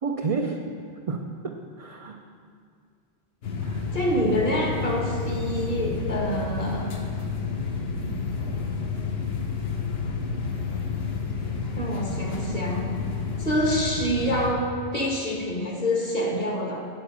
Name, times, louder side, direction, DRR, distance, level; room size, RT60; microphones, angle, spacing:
voice 1, 0.0-0.6 1.1-2.2 3.6-3.9, right 4 dB, 55° right, 3 dB, 0.3 m, -30 dB
sound 1, 3.4-14.5, left 4 dB, 70° left, 1.0 m, -30 dB
voice 2, 3.9-6.9 11.8-13.0 13.4-16.8, equal, 40° left, -1 dB, 1.2 m, -26 dB
8.8 x 4.5 x 6.0 m, 2.3 s
omnidirectional pair, 1.1 m